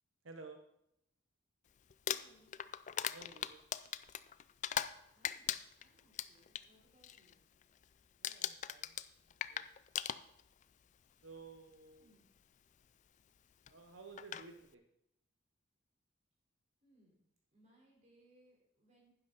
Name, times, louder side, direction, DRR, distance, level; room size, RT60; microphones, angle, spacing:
voice 1, 0.2-0.6 3.1-3.6 8.2-9.0 9.5-9.6 11.2-12.2 13.7-14.8, right 3 dB, 80° right, 5 dB, 0.8 m, -54 dB
Crumpling crinkling, 1.9-5.0 5.2-6.6 7.0-7.3 7.6-7.9 8.2-10.6 11.6-11.7 13.7-13.8 14.2-14.5, left 10 dB, 40° left, 0.3 m, -39 dB
voice 2, 2.1-2.5 5.1-5.4 5.8-7.4 12.0-12.3 16.8-17.2 17.5-19.1, right 1 dB, 35° right, -3 dB, 4.3 m, -69 dB
11.0 x 10.5 x 4.1 m, 0.81 s
head